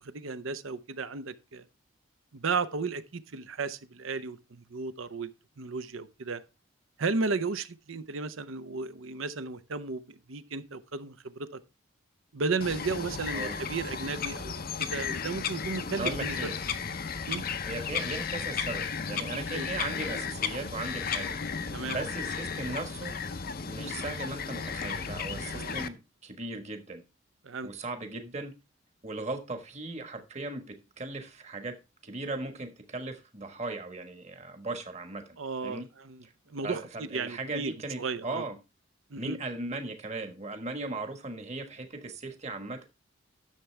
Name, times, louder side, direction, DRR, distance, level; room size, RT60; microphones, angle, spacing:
voice 1, 0.0-1.7 2.3-5.3 5.6-6.4 7.0-11.6 12.3-16.5 17.3-17.4 19.5-19.7 21.7-22.0 25.4-25.9 27.4-27.7 35.4-36.2 36.5-37.7 38.0-38.4 39.1-39.4, right 4 dB, 75° right, 0.8 m, -34 dB
Bird vocalization bird call bird song, 12.6-25.9, left 6 dB, 45° left, 0.6 m, -34 dB
voice 2, 12.9-13.6 15.9-16.6 17.7-21.3 21.9-23.1 23.6-27.0 27.6-28.5 29.0-35.4 35.6-35.9 36.2-36.3 36.6-38.6 39.2-42.9, right 2 dB, 30° right, 1.3 m, -38 dB
11.0 x 7.0 x 3.3 m
head